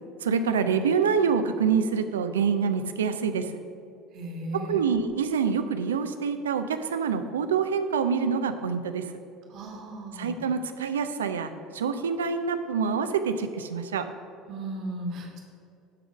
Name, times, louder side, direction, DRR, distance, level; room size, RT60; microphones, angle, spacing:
voice 1, 0.2-3.5 4.5-9.0 10.2-14.1, right 6 dB, 80° right, 9 dB, 0.5 m, -26 dB
voice 2, 4.1-4.8 9.5-10.4 14.5-15.4, right 1 dB, 55° right, 1 dB, 1.5 m, -35 dB
11.5 x 3.8 x 6.0 m, 2.5 s
figure-of-eight pair, 65°, 0 cm